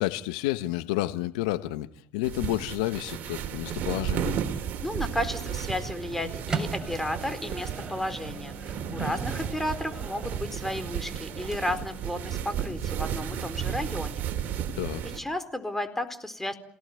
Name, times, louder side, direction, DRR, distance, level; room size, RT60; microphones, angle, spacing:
voice 1, 0.0-4.3 14.7-15.1, left 17 dB, 80° left, 1.2 m, -30 dB
sound 1, 2.2-15.2, right 8 dB, 55° right, 3.5 m, -33 dB
voice 2, 4.8-14.3 15.1-16.5, left 1 dB, 10° left, 4.3 m, -33 dB
Microwave oven, 6.1-12.1, right 4 dB, 25° right, 7.0 m, -40 dB
28.5 x 18.0 x 9.4 m
hypercardioid pair, 70°, 4 cm